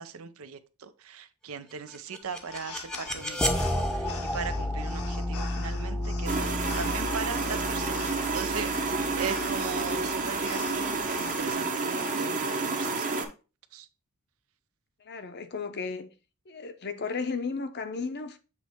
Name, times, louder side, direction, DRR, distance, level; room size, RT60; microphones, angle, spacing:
voice 1, 0.0-6.4 6.8-13.2 13.7-13.9, right 6 dB, 70° right, 0.6 m, -39 dB
sound 1, 1.9-10.9, left 1 dB, 5° left, 0.7 m, -32 dB
sound 2, 2.2-11.5, left 5 dB, 80° left, 1.0 m, -45 dB
sound 3, 6.3-13.3, right 3 dB, 35° right, 1.0 m, -30 dB
voice 2, 15.0-16.1 16.5-18.4, left 4 dB, 50° left, 0.7 m, -34 dB
7.3 x 3.1 x 4.4 m
head